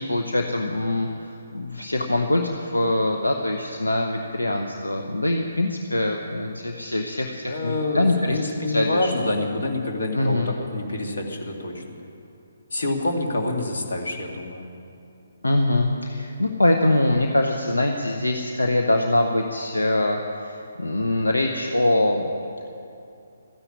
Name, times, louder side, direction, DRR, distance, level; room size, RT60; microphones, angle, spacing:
voice 1, 0.0-9.1 10.1-10.5 15.4-22.2, left 1 dB, 80° left, 3 dB, 1.1 m, -23 dB
voice 2, 7.5-11.8 12.7-14.6, left 2 dB, 65° left, 2 dB, 2.3 m, -27 dB
14.0 x 10.0 x 9.6 m, 2.6 s
figure-of-eight pair, 135°, 0 cm